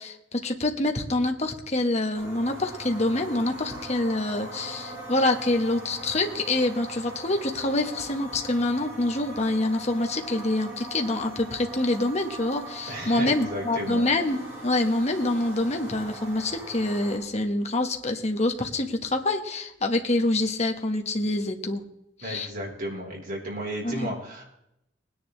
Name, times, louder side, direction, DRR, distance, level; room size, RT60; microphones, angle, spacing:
voice 1, 0.0-14.4 14.6-21.8 22.2-22.5 23.8-24.1, left 2 dB, 35° left, 4 dB, 1.3 m, -26 dB
sound 1, 2.1-17.2, right 1 dB, 15° right, 6.0 m, -41 dB
voice 2, 12.9-14.0 22.2-24.4, equal, 50° right, -2 dB, 4.2 m, -34 dB
20.0 x 10.0 x 3.3 m, 0.81 s
head